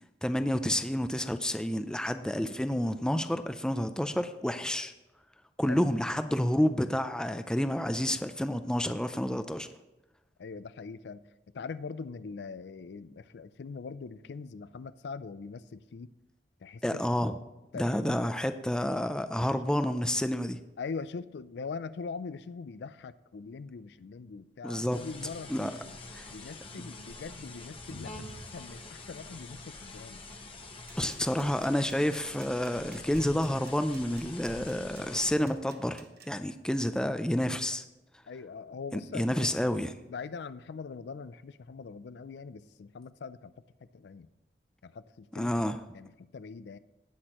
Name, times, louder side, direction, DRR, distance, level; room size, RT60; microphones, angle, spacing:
voice 1, 0.2-4.9 5.6-9.7 16.8-17.3 17.7-20.6 24.6-25.0 25.5-25.7 26.1-26.2 31.0-37.8 38.9-39.9 45.3-45.8, left 1 dB, 5° left, 9 dB, 0.4 m, -29 dB
voice 2, 10.4-11.2 11.5-16.1 16.6-17.0 17.7-18.2 20.8-25.7 26.3-30.2 38.3-39.4 40.1-43.5 43.9-44.3 44.8-45.5 45.9-46.8, left 5 dB, 70° left, 15 dB, 0.4 m, -42 dB
sound 1, 24.9-35.3, left 2 dB, 30° left, 1.1 m, -45 dB
sound 2, 30.8-36.3, right 8 dB, 60° right, 1.1 m, -54 dB
17.5 x 6.2 x 3.0 m, 1.0 s
head